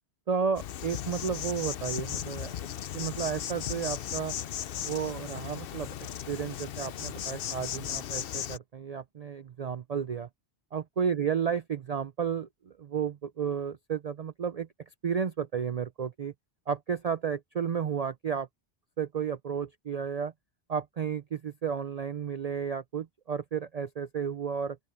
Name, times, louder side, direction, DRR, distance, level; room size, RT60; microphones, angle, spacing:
voice 1, 0.3-2.5 2.9-4.3 4.8-6.0 6.3-10.3 10.7-14.7 15.0-16.3 16.7-18.5 19.0-20.3 20.7-24.8, right 7 dB, 45° right, 0.6 m, -32 dB
Insect, 0.5-8.6, left 10 dB, 65° left, 0.8 m, -36 dB
open air
omnidirectional pair, 1.1 m